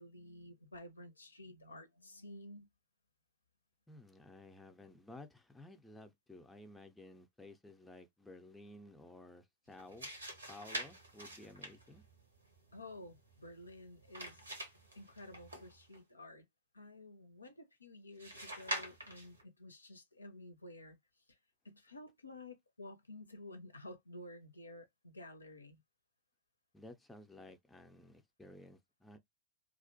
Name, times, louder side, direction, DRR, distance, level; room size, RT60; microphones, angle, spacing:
voice 1, 0.0-2.7 12.7-14.6 15.0-16.5 16.7-21.0 21.3-21.4 21.6-25.8, left 1 dB, 80° left, 0.5 m, -52 dB
voice 2, 3.9-10.1 10.5-12.0 26.7-29.2, left 2 dB, 5° left, 0.5 m, -55 dB
sound 1, 9.7-16.0 18.2-19.4, right 1 dB, 80° right, 0.9 m, -46 dB
2.4 x 2.0 x 2.6 m
figure-of-eight pair, 90°, 0 cm